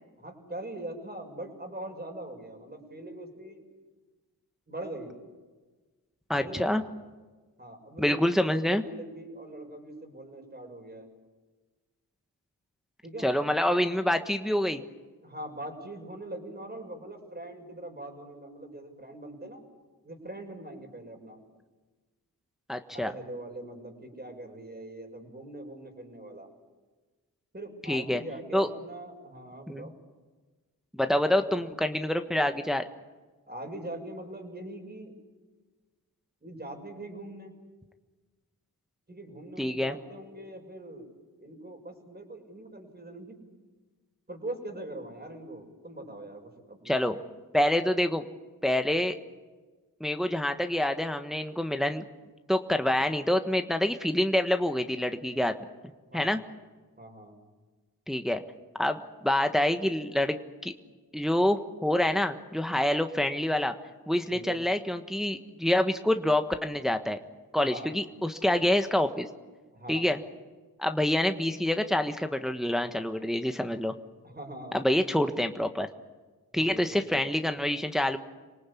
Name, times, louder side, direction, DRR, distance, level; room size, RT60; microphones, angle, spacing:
voice 1, 0.2-3.6 4.7-5.1 6.4-6.7 7.6-11.1 13.0-13.3 15.2-19.6 20.0-21.4 22.9-26.5 27.5-29.9 31.1-31.7 33.5-35.1 36.4-37.5 39.1-41.1 41.4-43.4 44.3-47.0 56.1-56.4 57.0-57.4 64.3-64.6 67.6-67.9 69.7-70.1 74.2-74.9 76.5-77.1, right 1 dB, 25° right, 4 dB, 6.4 m, -42 dB
voice 2, 6.3-6.8 8.0-8.8 13.2-14.8 22.7-23.1 27.9-28.2 28.5-28.7 29.7-29.9 31.0-32.8 39.6-39.9 46.8-47.2 47.5-48.2 48.6-49.1 50.0-52.0 52.5-55.5 56.1-56.4 58.1-58.4 58.8-60.4 60.6-60.7 61.1-63.7 64.1-67.2 67.5-69.3 69.9-70.2 70.8-73.9 74.7-75.9 76.5-78.2, left 1 dB, ahead, 7 dB, 1.4 m, -26 dB
27.0 x 18.5 x 8.6 m, 1.3 s
cardioid pair, 50°, 38 cm